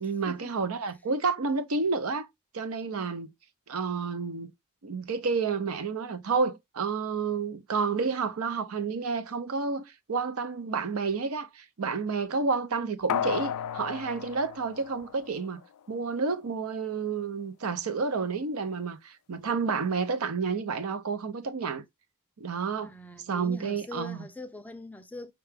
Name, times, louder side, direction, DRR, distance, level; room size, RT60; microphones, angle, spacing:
voice 1, 0.0-2.3 2.5-3.3 3.7-4.5 4.8-15.6 15.9-21.8 22.4-22.9 23.3-24.2, right 4 dB, 70° right, 0.6 m, -30 dB
sound 1, 13.1-15.7 16.0-16.1, left 8 dB, 85° left, 0.3 m, -33 dB
voice 2, 22.8-25.3, left 1 dB, 5° left, 0.4 m, -43 dB
5.6 x 2.3 x 3.3 m
head